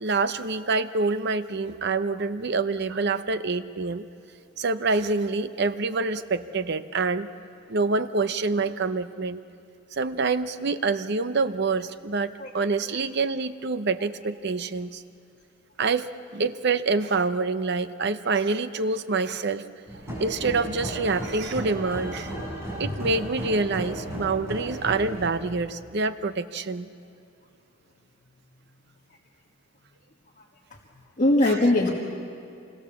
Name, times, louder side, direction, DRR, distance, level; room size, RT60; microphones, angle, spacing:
voice 1, 0.0-4.0 4.6-7.3 7.7-9.4 9.9-15.0 15.8-16.1 16.3-19.6 20.2-22.3 22.8-26.9 31.4-31.6, right 3 dB, 60° right, 12 dB, 0.8 m, -26 dB
sound 1, 19.9-25.3, equal, 15° right, 7.7 m, -35 dB
voice 2, 31.2-31.9, left 1 dB, 40° left, -3 dB, 1.7 m, -21 dB
26.0 x 22.0 x 7.0 m, 2.4 s
head